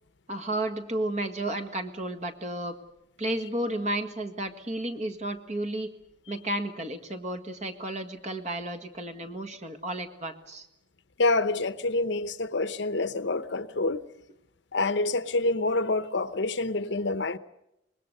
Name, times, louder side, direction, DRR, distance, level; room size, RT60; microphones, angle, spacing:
voice 1, 0.3-2.8 3.2-5.9 6.3-10.7, right 1 dB, 35° right, 1.8 m, -32 dB
voice 2, 11.2-14.0 14.7-17.4, left 2 dB, 65° left, 0.9 m, -27 dB
25.0 x 21.0 x 6.7 m
head